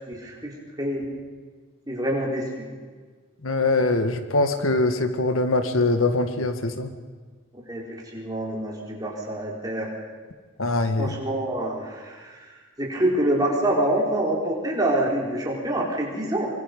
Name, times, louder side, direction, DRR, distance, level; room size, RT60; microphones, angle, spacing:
voice 1, 0.1-1.1 1.9-2.6 7.7-7.8 8.1-9.9 11.0-12.5 12.8-16.5, right 1 dB, 20° right, -3 dB, 4.8 m, -26 dB
voice 2, 3.4-6.9 10.6-11.1, left 2 dB, 90° left, 7 dB, 1.8 m, -23 dB
24.5 x 24.5 x 5.5 m, 1.5 s
head